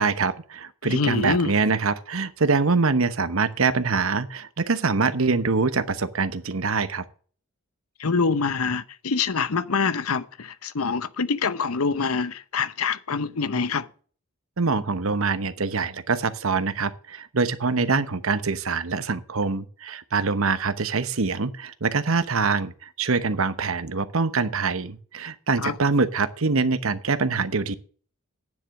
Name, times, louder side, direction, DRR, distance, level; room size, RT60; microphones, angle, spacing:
voice 1, 0.0-7.0 14.6-27.7, right 4 dB, 70° right, 1.0 m, -24 dB
voice 2, 0.8-1.5 8.0-13.9 25.6-25.8, left 5 dB, 85° left, 0.8 m, -25 dB
9.6 x 7.8 x 6.4 m
head